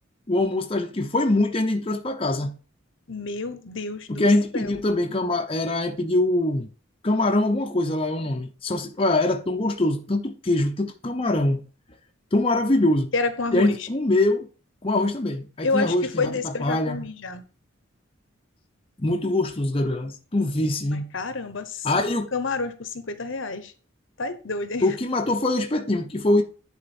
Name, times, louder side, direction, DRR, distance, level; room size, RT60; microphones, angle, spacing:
voice 1, 0.3-2.5 4.1-6.7 7.0-11.6 12.3-13.1 13.5-14.5 14.8-17.0 19.0-21.1 21.8-22.3 24.8-26.4, left 2 dB, 25° left, 0.7 m, -23 dB
voice 2, 3.1-4.3 4.5-4.7 13.1-13.9 15.6-17.4 20.9-22.0 22.3-23.7 24.2-25.0, left 3 dB, 65° left, 0.9 m, -29 dB
10.0 x 4.3 x 4.3 m
head